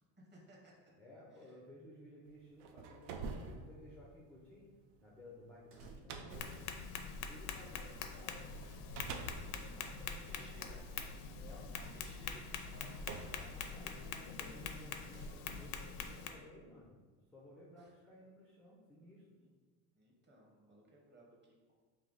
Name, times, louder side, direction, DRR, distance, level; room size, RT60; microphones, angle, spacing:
voice 1, 0.2-0.9 1.3-1.6 9.3-9.9 10.3-10.8 11.5-13.0 17.8-17.9 19.3-19.5 19.9-21.6, right 2 dB, 25° right, -3 dB, 1.0 m, -61 dB
voice 2, 1.0-4.7 5.0-6.5 7.1-8.6 9.5-10.4 11.3-11.7 13.4-17.0 17.3-19.2, left 1 dB, 5° left, -4 dB, 0.4 m, -57 dB
sound 1, 2.4-8.0 8.6-11.1 11.9-12.0 12.6-14.3, right 4 dB, 70° right, 0.6 m, -49 dB
sound 2, 3.0-3.6 5.7-6.4 9.4-10.1 11.8-12.5 13.2-13.6 14.0-14.1 15.1-15.8, right 1 dB, 55° right, 1.4 m, -63 dB
Tap, 6.3-16.3, left 5 dB, 60° left, 0.5 m, -44 dB
3.3 x 2.7 x 3.9 m, 1.4 s
cardioid pair, 125°, 45 cm